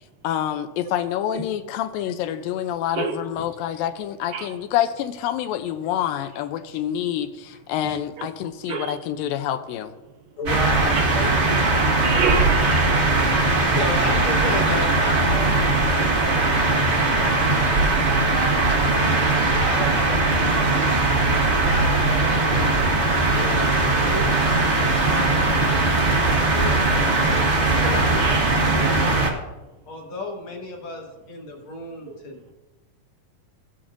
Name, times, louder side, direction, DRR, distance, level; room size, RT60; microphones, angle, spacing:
voice 1, 0.2-9.9, left 11 dB, 85° left, 9 dB, 2.3 m, -27 dB
voice 2, 10.4-12.0 12.6-15.5 16.1-17.6 18.3-20.6 21.4-24.8 25.1-25.8 26.3-27.2 27.7-29.4 29.9-32.5, left 2 dB, 50° left, 0 dB, 1.6 m, -34 dB
sound 1, 10.5-29.3, right 2 dB, 55° right, 0.7 m, -20 dB
voice 3, 12.0-12.9 28.2-28.4, right 5 dB, 75° right, 2 dB, 2.9 m, -26 dB
sound 2, 20.8-29.0, left 5 dB, 70° left, 2.5 m, -39 dB
16.5 x 8.5 x 2.5 m, 1.1 s
omnidirectional pair, 4.0 m